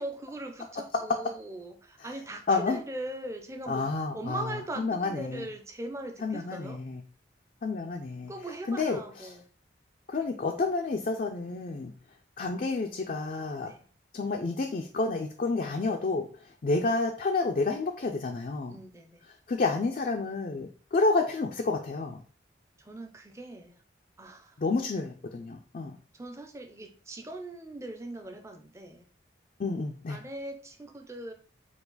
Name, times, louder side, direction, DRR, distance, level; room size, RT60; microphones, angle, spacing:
voice 1, 0.0-3.9 4.1-6.8 8.3-9.4 13.6-13.8 18.7-19.2 22.8-23.7 24.2-24.6 26.1-29.0 30.1-31.3, right 1 dB, 15° right, 4 dB, 0.5 m, -40 dB
voice 2, 2.5-2.8 3.7-5.5 6.2-7.0 7.6-8.3 8.7-9.3 10.1-11.9 12.4-13.7 14.1-18.8 19.5-22.2 24.6-26.0 29.6-30.2, left 3 dB, 45° left, 3 dB, 0.4 m, -30 dB
4.6 x 2.4 x 3.9 m, 0.42 s
head